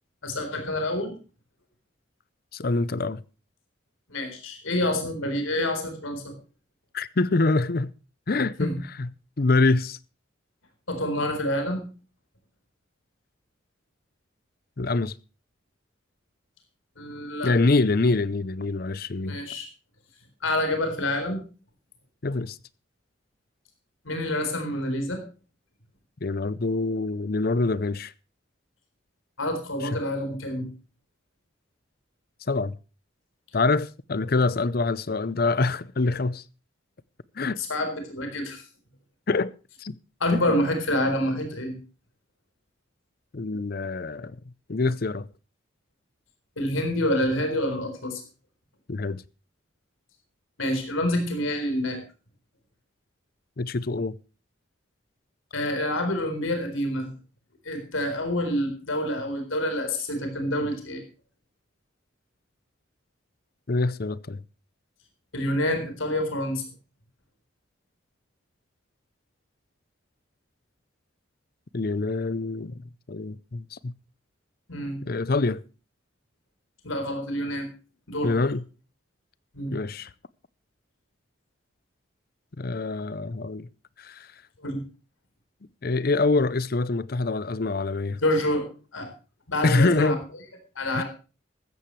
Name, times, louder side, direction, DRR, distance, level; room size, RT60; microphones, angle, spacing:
voice 1, 0.2-1.1 4.1-6.4 8.6-8.8 10.9-11.8 17.0-17.5 19.2-19.7 20.4-21.4 24.0-25.2 29.4-30.7 37.6-38.6 40.2-41.8 46.6-48.2 50.6-52.0 55.5-57.1 57.6-61.0 65.3-66.6 74.7-75.0 76.8-77.7 78.1-78.4 79.5-79.7 84.6-84.8 88.2-88.7 88.9-89.1 89.5-90.2 90.8-91.0, left 1 dB, 85° left, 4.1 m, -27 dB
voice 2, 2.5-3.2 6.9-7.9 8.3-8.7 9.0-9.1 9.4-10.0 14.8-15.2 17.4-19.4 22.2-22.6 26.2-28.1 29.9-30.0 32.5-32.8 33.5-36.4 37.4-37.6 39.3-39.5 39.8-40.0 40.3-40.6 43.3-44.4 44.7-45.3 48.9-49.2 53.6-54.2 63.7-64.4 71.7-73.9 75.1-75.6 78.2-78.6 79.7-80.1 82.6-83.7 84.0-84.3 85.8-88.2 89.6-90.2 90.9-91.0, left 3 dB, 50° left, 0.6 m, -25 dB
15.0 x 13.5 x 3.2 m
head